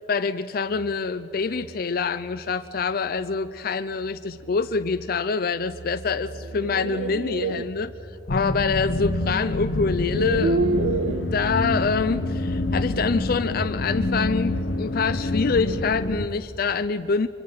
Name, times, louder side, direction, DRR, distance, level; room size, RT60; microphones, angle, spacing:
voice 1, 0.1-7.9 8.3-17.3, left 4 dB, 50° left, 11 dB, 0.5 m, -26 dB
sound 1, 0.6-15.7, right 1 dB, 40° right, 6.3 m, -47 dB
sound 2, 6.3-7.6 9.1-9.2 9.9-11.3, right 3 dB, 90° right, 0.8 m, -27 dB
sound 3, 8.3-16.3, left 2 dB, 75° left, 1.0 m, -27 dB
24.5 x 24.5 x 5.7 m, 2.7 s
head